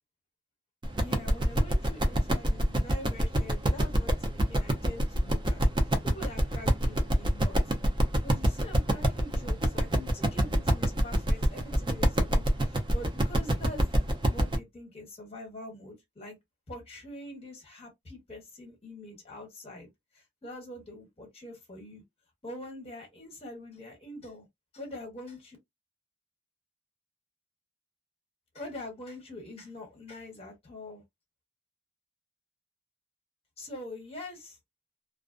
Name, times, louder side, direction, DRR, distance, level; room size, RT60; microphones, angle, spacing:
sound 1, 0.8-14.6, right 1 dB, 25° right, 0.5 m, -26 dB
voice 1, 1.0-5.6 6.0-7.7 8.2-16.4 16.7-19.9 20.1-22.0 22.4-24.5 24.7-25.6 28.5-31.0 33.6-34.6, left 1 dB, 35° left, 1.1 m, -44 dB
2.5 x 2.1 x 2.4 m
head